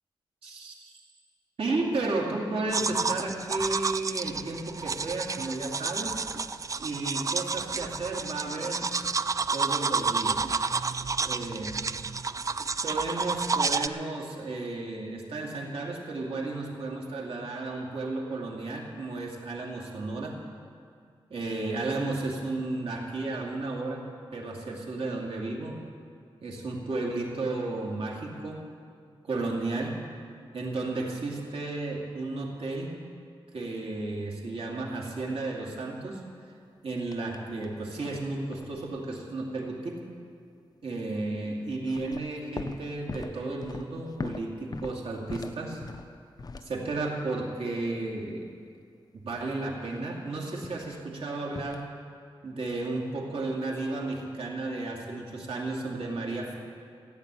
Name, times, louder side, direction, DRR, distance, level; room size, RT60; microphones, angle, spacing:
voice 1, 0.4-0.9 1.6-6.2 6.8-8.9 9.5-10.4 11.2-11.7 12.8-20.4 21.3-25.8 26.4-28.7 29.2-30.1 30.5-33.0 33.5-36.2 36.8-40.0 40.8-45.8 46.6-48.5 49.2-51.9 52.4-56.6, right 2 dB, 85° right, -1 dB, 2.5 m, -33 dB
sound 1, 2.7-13.9, right 4 dB, 35° right, 0.3 m, -30 dB
sound 2, 37.1-37.8 38.1-39.2 41.8-47.2 50.6-51.0 51.5-51.9, left 3 dB, 45° left, 0.6 m, -41 dB
15.5 x 9.4 x 8.3 m, 2.3 s
wide cardioid pair, 140°, 9 cm